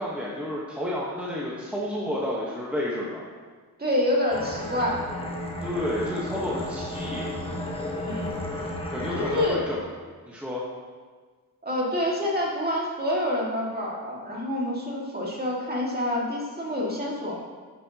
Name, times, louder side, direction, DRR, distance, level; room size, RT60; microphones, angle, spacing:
voice 1, 0.0-3.2 5.6-7.3 8.9-9.8 10.2-10.7, left 1 dB, 5° right, -6 dB, 1.1 m, -30 dB
voice 2, 3.8-5.0 8.1-8.3 9.1-9.6 11.6-17.4, left 1 dB, 25° right, -4 dB, 2.0 m, -27 dB
sound 1, 4.3-9.5, left 1 dB, 15° left, 1.2 m, -33 dB
11.5 x 8.5 x 2.9 m, 1.5 s
wide cardioid pair, 140°, 36 cm